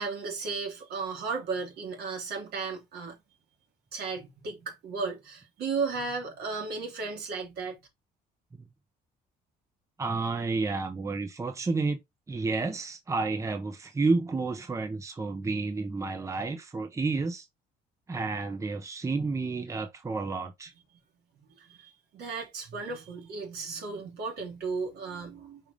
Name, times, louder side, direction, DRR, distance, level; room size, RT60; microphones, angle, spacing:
voice 1, 0.0-3.2 3.9-7.8 21.6-25.6, right 4 dB, 70° right, 3.1 m, -35 dB
voice 2, 10.0-12.0 12.3-17.5 18.1-20.7, right 3 dB, 20° right, 0.8 m, -30 dB
5.5 x 4.9 x 3.5 m
cardioid pair, 110°, 17 cm